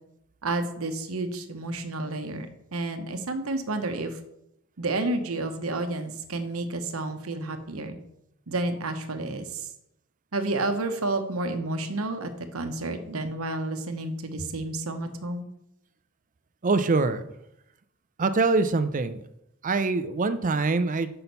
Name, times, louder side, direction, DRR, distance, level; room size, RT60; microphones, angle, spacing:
voice 1, 0.4-4.2 4.8-8.0 8.5-9.7 10.3-15.5, right 2 dB, 75° right, 7 dB, 0.9 m, -30 dB
voice 2, 16.6-17.2 18.2-19.2 19.6-21.1, right 3 dB, 35° right, 11 dB, 0.5 m, -24 dB
6.1 x 5.7 x 5.4 m, 0.82 s
head